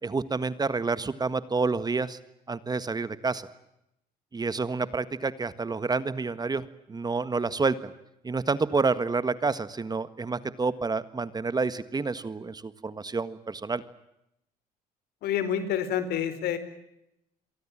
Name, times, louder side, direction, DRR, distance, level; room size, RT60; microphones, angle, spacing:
voice 1, 0.0-2.2 2.5-3.5 4.3-7.9 8.2-13.8, right 4 dB, 25° right, 14 dB, 1.6 m, -29 dB
voice 2, 15.2-16.6, left 9 dB, 75° left, 12 dB, 4.4 m, -28 dB
29.0 x 23.0 x 7.5 m, 0.83 s
cardioid pair, 90°, 16 cm